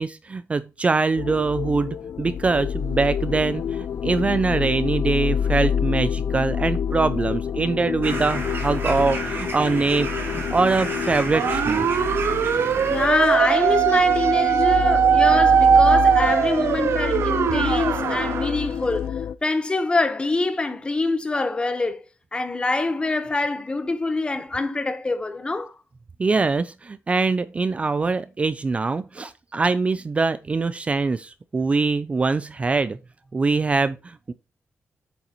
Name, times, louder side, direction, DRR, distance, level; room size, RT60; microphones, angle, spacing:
voice 1, 0.0-11.8 26.2-33.0 33.3-34.3, right 4 dB, 30° right, 0.3 m, -23 dB
sound 1, 1.2-19.3, left 8 dB, 65° left, 0.4 m, -28 dB
sound 2, 8.0-13.1, right 3 dB, 60° right, 2.8 m, -32 dB
sound 3, 11.3-18.5, right 7 dB, 75° right, 0.6 m, -20 dB
voice 2, 12.9-22.0 22.3-25.7, left 3 dB, 20° left, 1.0 m, -25 dB
8.7 x 6.8 x 2.9 m
wide cardioid pair, 135°, 4 cm